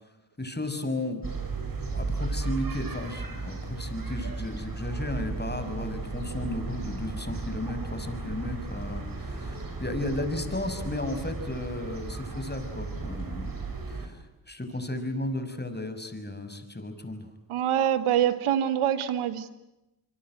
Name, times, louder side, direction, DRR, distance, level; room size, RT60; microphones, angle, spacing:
voice 1, 0.4-1.3 1.9-14.2 14.5-17.3, left 1 dB, 20° left, 9 dB, 6.4 m, -34 dB
sound 1, 1.2-14.1, right 3 dB, 45° right, 6.6 m, -35 dB
voice 2, 17.5-19.6, right 10 dB, 90° right, 13 dB, 1.7 m, -25 dB
27.0 x 23.0 x 9.3 m, 0.93 s
supercardioid pair, 45°, 48 cm